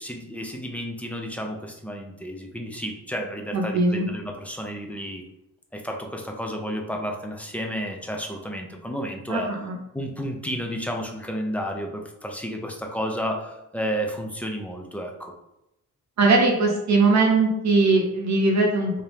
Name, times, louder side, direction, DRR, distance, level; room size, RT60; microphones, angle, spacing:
voice 1, 0.0-5.2 5.7-9.5 9.9-15.3, equal, 5° left, 2 dB, 0.4 m, -31 dB
voice 2, 3.5-4.1 9.3-9.8 16.2-18.9, right 3 dB, 60° right, 0 dB, 0.8 m, -20 dB
3.5 x 2.8 x 3.4 m, 0.87 s
wide cardioid pair, 155°, 32 cm